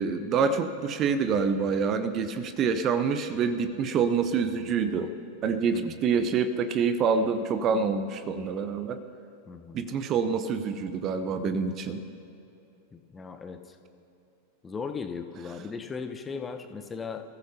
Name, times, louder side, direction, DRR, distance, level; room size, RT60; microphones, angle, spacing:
voice 1, 0.0-5.1 5.4-9.0 9.7-12.1, right 5 dB, 30° right, 10 dB, 0.8 m, -26 dB
voice 2, 9.5-9.8 12.9-13.6 14.6-17.2, left 5 dB, 15° left, 7 dB, 0.9 m, -37 dB
28.0 x 15.0 x 2.8 m, 2.8 s
figure-of-eight pair, 90°, 0 cm